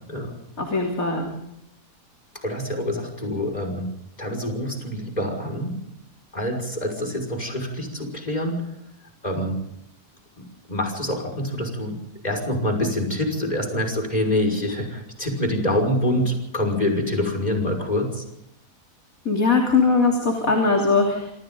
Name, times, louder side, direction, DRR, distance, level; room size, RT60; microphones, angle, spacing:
voice 1, 0.6-1.3 19.3-21.3, left 4 dB, 65° left, 0 dB, 3.7 m, -20 dB
voice 2, 2.4-5.8 6.3-8.7 9.2-9.6 10.7-12.0 12.2-18.2, left 1 dB, 25° left, 2 dB, 5.9 m, -26 dB
27.0 x 26.5 x 3.9 m, 0.81 s
omnidirectional pair, 1.5 m